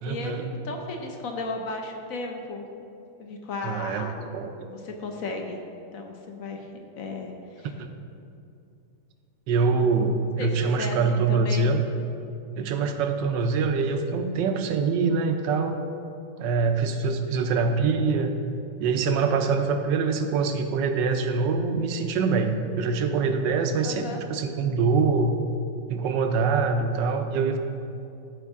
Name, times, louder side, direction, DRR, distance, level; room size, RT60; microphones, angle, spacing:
voice 1, 0.0-0.5 3.6-4.5 7.8-7.9 9.5-11.8 12.6-15.8 16.4-18.3 18.8-25.4 25.9-27.6, right 4 dB, 75° right, 6 dB, 1.2 m, -24 dB
voice 2, 0.6-2.6 3.2-4.1 4.7-5.6 5.9-6.7 7.0-7.7 10.4-11.7 23.8-24.2, left 3 dB, 65° left, 3 dB, 0.9 m, -34 dB
13.0 x 4.8 x 3.6 m, 2.6 s
omnidirectional pair, 2.1 m